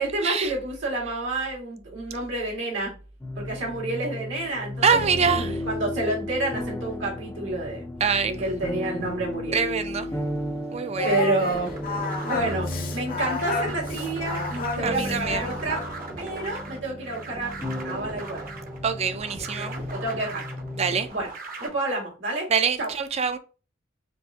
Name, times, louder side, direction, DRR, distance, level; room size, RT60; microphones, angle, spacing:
voice 1, 0.0-2.9 3.4-4.8 5.3-7.9 8.3-9.6 11.0-11.7 12.2-15.8 16.2-17.6 17.8-18.4 19.6-19.7 19.9-20.4 21.1-21.3 21.6-22.5 22.8-22.9, right 2 dB, 85° right, 2.1 m, -29 dB
sound 1, 3.2-21.1, left 1 dB, 15° left, 0.6 m, -34 dB
voice 2, 4.8-5.6 8.0-8.4 9.5-10.1 10.7-11.2 14.8-15.4 18.8-19.8 20.8-21.1 22.5-23.4, right 6 dB, 35° right, 0.4 m, -24 dB
Singing, 11.0-16.0, left 3 dB, 50° left, 0.7 m, -31 dB
sound 2, 11.5-21.7, right 2 dB, 50° right, 0.8 m, -40 dB
4.5 x 3.3 x 2.7 m
head